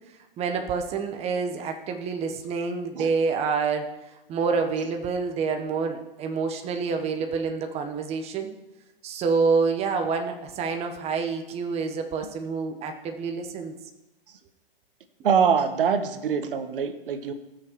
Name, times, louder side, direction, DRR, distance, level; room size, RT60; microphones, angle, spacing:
voice 1, 0.4-3.9 4.3-8.5 9.0-13.7, right 5 dB, 20° right, 6 dB, 1.3 m, -27 dB
voice 2, 15.2-17.3, right 6 dB, 65° right, 9 dB, 1.4 m, -24 dB
19.0 x 6.6 x 4.7 m, 0.97 s
hypercardioid pair, 135°, 29 cm